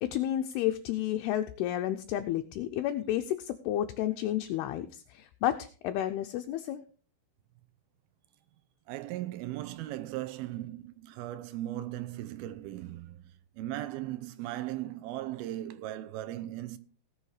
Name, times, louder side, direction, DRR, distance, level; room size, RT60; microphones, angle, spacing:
voice 1, 0.0-6.8, left 12 dB, 80° left, 2.5 m, -31 dB
voice 2, 8.9-13.2 13.5-16.8, right 14 dB, 75° right, 2.6 m, -37 dB
18.5 x 6.4 x 4.8 m
omnidirectional pair, 4.9 m